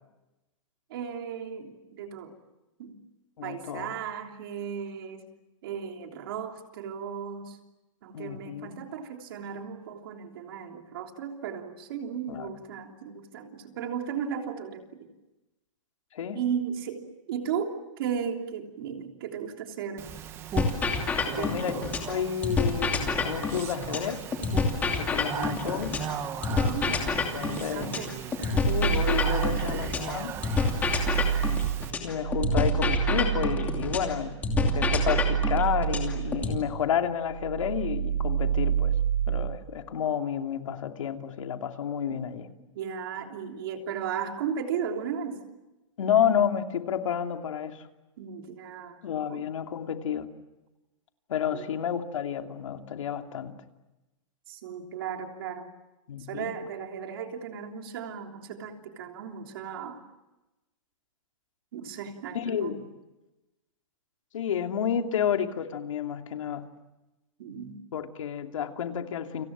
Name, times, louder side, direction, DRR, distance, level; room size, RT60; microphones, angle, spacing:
voice 1, 0.9-2.3 2.8-3.0 3.4-5.2 5.6-7.6 8.0-15.1 16.3-20.1 21.3-21.9 26.5-28.1 42.1-42.2 42.7-45.4 48.2-49.0 49.3-49.5 51.5-51.7 54.5-55.7 56.3-60.0 61.7-62.7 67.4-67.8, right 7 dB, 45° right, 4 dB, 3.3 m, -35 dB
voice 2, 3.4-3.9 8.1-8.9 12.3-12.5 16.1-16.4 21.4-24.2 24.8-26.0 27.3-28.0 28.7-30.4 32.0-34.3 34.6-38.9 39.3-42.5 46.0-47.9 49.0-50.3 51.3-53.6 56.1-56.5 62.3-62.9 64.3-66.7 67.9-69.5, left 8 dB, 75° left, 5 dB, 2.9 m, -30 dB
Speech, 20.0-31.9, right 8 dB, 15° right, 1.2 m, -38 dB
sound 1, 20.6-22.1 22.4-26.1 26.4-30.1 30.4-34.1 34.4-36.6, left 4 dB, 10° left, 2.7 m, -28 dB
sound 2, 28.6-30.0 30.4-37.0 37.3-39.6, right 9 dB, 65° right, 5.0 m, -28 dB
30.0 x 26.5 x 7.4 m, 1.0 s
supercardioid pair, 175°, 16 cm